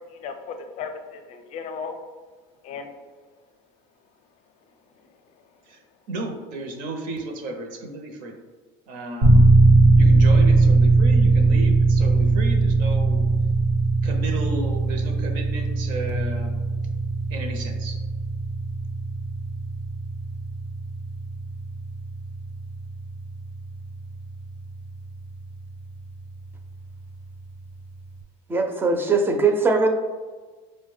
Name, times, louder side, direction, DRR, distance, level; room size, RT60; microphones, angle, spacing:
voice 1, 0.1-2.0 2.6-3.0 5.0-5.1, left 5 dB, 50° left, 6 dB, 0.5 m, -36 dB
voice 2, 6.1-8.3 8.9-9.5 10.0-13.2 14.0-16.6 17.3-18.0, right 2 dB, 60° right, 4 dB, 0.6 m, -33 dB
sound 1, 9.2-26.0, right 3 dB, 85° right, 0.9 m, -20 dB
voice 3, 28.5-29.9, right 3 dB, 15° right, 4 dB, 0.4 m, -20 dB
4.8 x 2.1 x 3.2 m, 1.4 s
cardioid pair, 135°, 15 cm